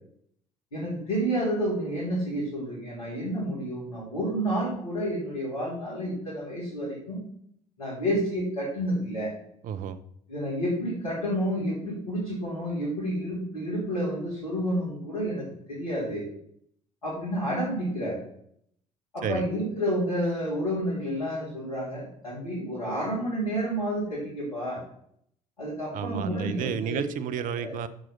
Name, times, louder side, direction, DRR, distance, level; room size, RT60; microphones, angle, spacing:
voice 1, 0.7-7.2 7.8-9.3 10.3-16.3 17.0-18.2 19.1-24.8 25.6-27.0 27.6-27.8, equal, 80° left, -7 dB, 2.9 m, -30 dB
voice 2, 9.6-10.0 19.2-19.4 25.9-27.9, right 8 dB, 50° right, 13 dB, 0.7 m, -31 dB
7.7 x 6.4 x 4.3 m, 0.68 s
figure-of-eight pair, 55°, 18 cm